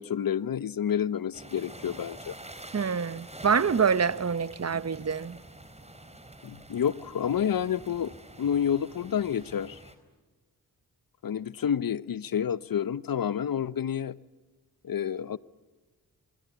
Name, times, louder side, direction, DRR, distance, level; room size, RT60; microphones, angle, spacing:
voice 1, 0.0-2.3 6.4-8.1 8.4-9.8 11.2-14.2 14.8-15.4, left 8 dB, 60° left, 0.9 m, -29 dB
sound 1, 1.3-9.9, right 1 dB, 15° right, 4.3 m, -47 dB
voice 2, 2.7-5.4, right 6 dB, 40° right, 1.0 m, -26 dB
24.5 x 24.5 x 8.2 m
cardioid pair, 50°, 39 cm